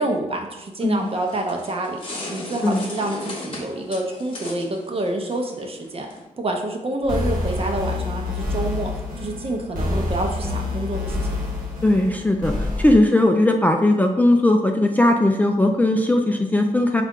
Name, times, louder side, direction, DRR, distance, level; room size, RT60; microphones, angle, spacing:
voice 1, 0.0-2.0 2.3-6.1 6.4-8.9 9.2-11.3, right 1 dB, 45° right, 2 dB, 0.7 m, -27 dB
sound 1, 1.0-6.2, left 2 dB, 40° left, 0.9 m, -36 dB
sound 2, 7.0-12.9, left 2 dB, 85° right, 1.1 m, -27 dB
voice 2, 11.8-12.5 12.8-17.0, left 1 dB, 10° left, 3 dB, 0.3 m, -18 dB
4.2 x 2.5 x 3.6 m, 1.0 s
cardioid pair, 75°, 14 cm